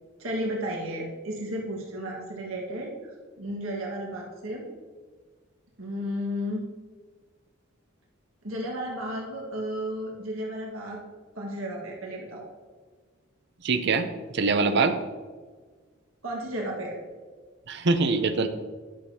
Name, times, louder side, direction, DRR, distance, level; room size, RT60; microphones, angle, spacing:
voice 1, 0.2-4.7 5.8-6.7 8.4-11.0 11.3-12.5 16.2-17.0, equal, 80° right, -2 dB, 1.6 m, -33 dB
voice 2, 13.6-14.1 14.3-15.0 17.7-18.5, right 4 dB, 55° right, 9 dB, 0.6 m, -23 dB
11.0 x 6.5 x 2.8 m, 1.5 s
head